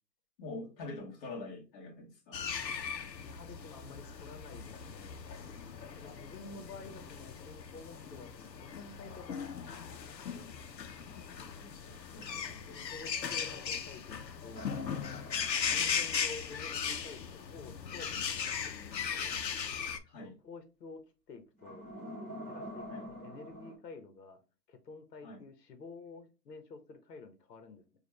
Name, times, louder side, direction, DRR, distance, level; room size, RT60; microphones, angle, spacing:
voice 1, 0.4-2.5 6.0-6.1 6.5-7.0 11.1-12.9 15.7-15.9 20.0-20.4 22.9-23.1 25.2-25.4, left 2 dB, 35° left, 1.4 m, -47 dB
sound 1, 2.3-20.0, left 7 dB, 90° left, 0.8 m, -38 dB
voice 2, 3.3-5.3 5.9-9.7 10.0-10.5 12.3-15.3 15.7-19.4 20.2-21.9 22.4-24.4 24.7-27.8, left 3 dB, 75° left, 1.1 m, -50 dB
sound 2, 14.5-16.9 21.6-23.7, equal, 10° left, 0.4 m, -47 dB
4.9 x 2.5 x 3.2 m
hypercardioid pair, 135°, 49 cm